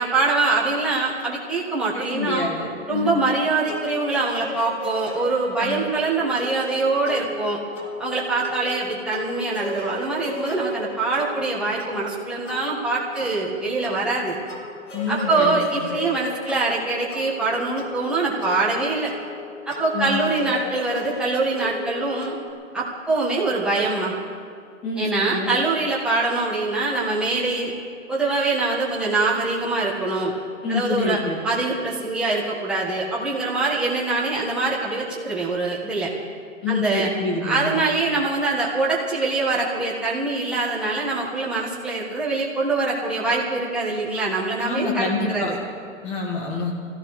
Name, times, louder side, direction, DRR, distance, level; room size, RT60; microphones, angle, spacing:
voice 1, 0.0-2.5 2.9-7.6 8.0-14.4 15.1-19.1 19.6-22.3 22.7-24.1 25.0-27.7 28.1-30.3 30.7-36.1 36.7-37.1 37.4-45.6, right 3 dB, ahead, -6 dB, 1.6 m, -24 dB
voice 2, 1.9-3.3 5.6-5.8 14.9-16.0 19.9-20.5 24.8-25.6 30.6-31.4 36.6-37.9 44.6-45.5 46.0-46.7, left 3 dB, 15° left, -1 dB, 2.1 m, -27 dB
sound 1, 3.6-22.5, left 3 dB, 60° left, 4.0 m, -36 dB
25.0 x 17.0 x 3.3 m, 2.3 s
hypercardioid pair, 160°, 41 cm